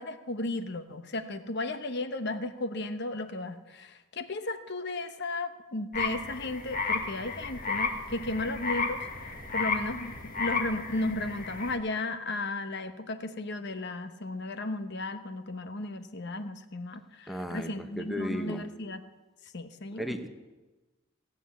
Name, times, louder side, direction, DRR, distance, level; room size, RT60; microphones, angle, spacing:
voice 1, 0.0-9.0 9.5-19.0 19.5-20.2, left 2 dB, 60° left, 10 dB, 1.0 m, -35 dB
sound 1, 5.9-11.8, left 4 dB, 45° left, 1.6 m, -33 dB
voice 2, 17.3-17.7 18.0-18.6 20.0-20.3, equal, ahead, 6 dB, 1.0 m, -34 dB
16.5 x 7.7 x 8.4 m, 1.2 s
head